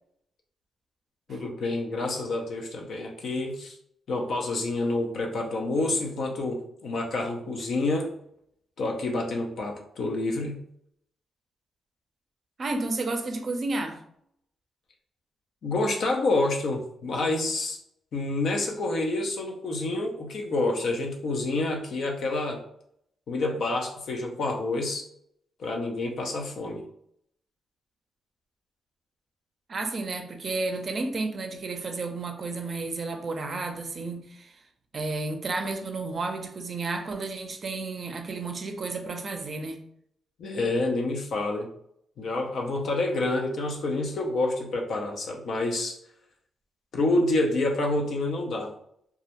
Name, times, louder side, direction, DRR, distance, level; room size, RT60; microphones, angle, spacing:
voice 1, 1.3-3.8 4.1-8.1 8.8-10.6 15.6-17.8 18.1-22.6 23.3-25.1 25.6-26.8 40.4-41.7 42.2-46.0 46.9-48.7, left 2 dB, 70° left, 0.5 m, -28 dB
voice 2, 12.6-14.0 29.7-34.6 34.9-39.8, right 3 dB, 45° right, 0.4 m, -32 dB
2.3 x 2.1 x 2.8 m
cardioid pair, 85°, 0 cm